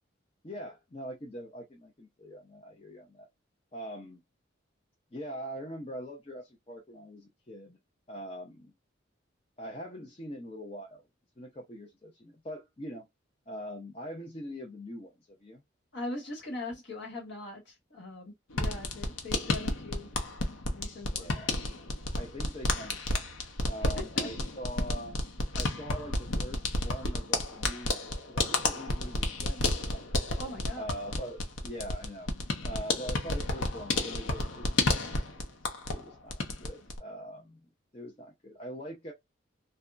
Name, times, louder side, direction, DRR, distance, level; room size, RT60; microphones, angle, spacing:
voice 1, 0.4-3.3 3.7-4.2 5.1-7.8 8.1-8.7 9.6-11.1 11.4-13.1 13.5-15.6 21.1-21.6 22.1-23.2 23.7-25.1 25.5-28.0 28.3-30.1 30.8-32.3 32.6-35.2 35.6-39.1, equal, 30° left, 0.6 m, -43 dB
voice 2, 15.9-20.1 20.7-21.3 24.0-24.3 30.4-30.9, left 2 dB, 60° left, 1.5 m, -41 dB
sound 1, 18.5-36.0 36.3-37.0, left 2 dB, 90° left, 0.7 m, -31 dB
2.7 x 2.2 x 2.3 m
head